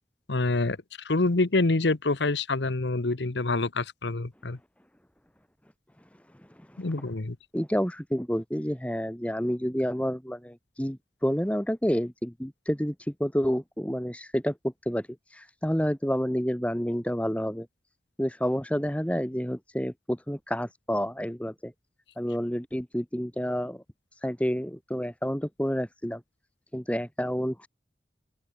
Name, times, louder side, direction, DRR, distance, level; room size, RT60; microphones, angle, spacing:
voice 1, 0.3-0.8 1.0-4.6 6.8-7.4, left 2 dB, 85° left, 1.1 m, -26 dB
voice 2, 7.5-17.7 18.2-21.7 22.2-23.8 24.1-26.2 26.7-27.7, equal, 5° left, 1.7 m, -29 dB
open air
head